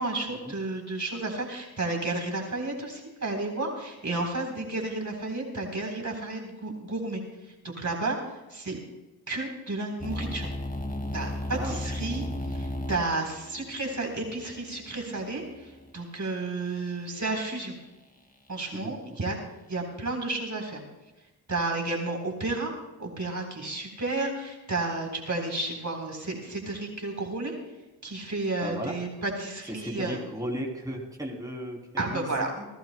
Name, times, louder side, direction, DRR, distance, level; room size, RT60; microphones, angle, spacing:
voice 1, 0.0-7.2 7.8-8.2 8.5-8.8 9.3-10.5 11.1-17.7 18.5-19.4 19.7-20.8 21.5-22.7 23.0-27.5 28.0-30.2 32.0-32.5, right 2 dB, 40° right, 1 dB, 3.8 m, -32 dB
sound 1, 10.0-15.9, left 1 dB, 20° left, 2.2 m, -35 dB
voice 2, 11.5-11.8 18.7-18.9 28.6-29.0 29.7-32.7, equal, 10° right, -1 dB, 3.1 m, -35 dB
29.0 x 12.0 x 2.2 m, 1.1 s
supercardioid pair, 45°, 46 cm